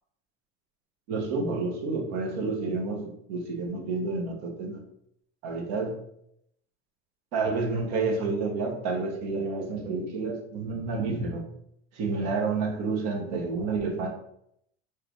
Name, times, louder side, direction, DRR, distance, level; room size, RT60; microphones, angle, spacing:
voice 1, 1.1-4.8 5.4-6.0 7.3-11.4 11.9-14.1, right 3 dB, 55° right, 1 dB, 1.1 m, -29 dB
4.8 x 2.3 x 3.1 m, 0.74 s
supercardioid pair, 120°, 31 cm